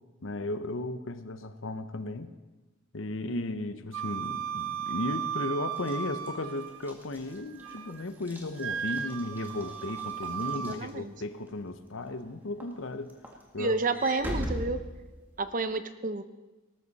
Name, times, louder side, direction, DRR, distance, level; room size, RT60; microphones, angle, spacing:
voice 1, 0.2-2.3 2.9-13.1 13.5-13.8, left 2 dB, 70° left, 10 dB, 0.9 m, -35 dB
Wind instrument woodwind instrument, 3.9-6.9 7.3-8.1 8.6-10.8, right 8 dB, 80° right, 0.6 m, -36 dB
Walk footsteps / Slam, 5.8-11.5 12.0-12.3 12.6-15.6, equal, 10° right, 1.8 m, -41 dB
voice 2, 10.6-11.1 13.6-14.8 15.4-16.2, right 3 dB, 40° right, 11 dB, 0.7 m, -30 dB
19.0 x 13.5 x 4.2 m, 1.1 s
head